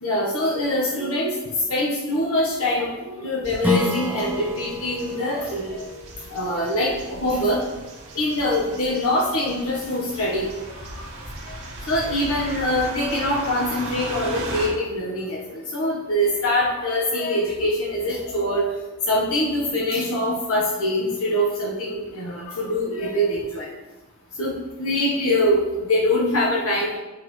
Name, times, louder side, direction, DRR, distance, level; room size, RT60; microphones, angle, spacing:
voice 1, 0.0-1.3 1.7-5.8 6.3-7.6 8.1-10.5 11.5-11.6 11.9-18.8 19.1-23.7 24.4-27.0, left 1 dB, 65° left, -2 dB, 1.3 m, -24 dB
sound 1, 3.4-14.7, right 2 dB, 60° right, 2.0 m, -37 dB
Strum, 3.6-8.8, left 1 dB, 10° right, 0.7 m, -31 dB
9.3 x 5.8 x 3.3 m, 1.1 s
head